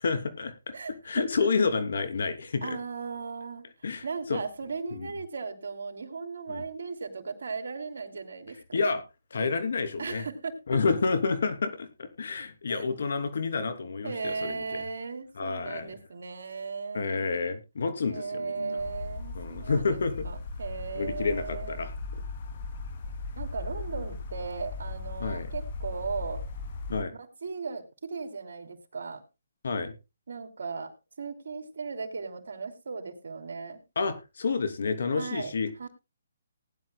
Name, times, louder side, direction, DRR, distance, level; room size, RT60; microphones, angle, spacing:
voice 1, 0.0-0.7 1.0-2.8 3.8-4.0 4.3-4.4 4.9-5.1 6.5-6.6 8.7-9.0 9.3-10.3 10.7-14.8 15.4-15.9 16.9-18.8 19.3-20.1 21.0-21.9 25.2-25.5 26.9-27.1 29.6-29.9 33.9-35.9, left 4 dB, 70° left, 9 dB, 2.9 m, -29 dB
voice 2, 0.7-1.5 2.6-3.6 4.0-8.8 10.0-10.8 12.7-12.8 14.0-17.4 18.1-20.0 20.2-21.8 23.4-26.4 27.2-29.2 30.3-33.8 35.1-35.5 35.8-35.9, right 4 dB, 70° right, 6 dB, 3.1 m, -37 dB
sound 1, 18.8-27.0, left 3 dB, 45° left, 2.6 m, -38 dB
19.5 x 11.0 x 2.2 m, 0.26 s
hypercardioid pair, 155°, 0 cm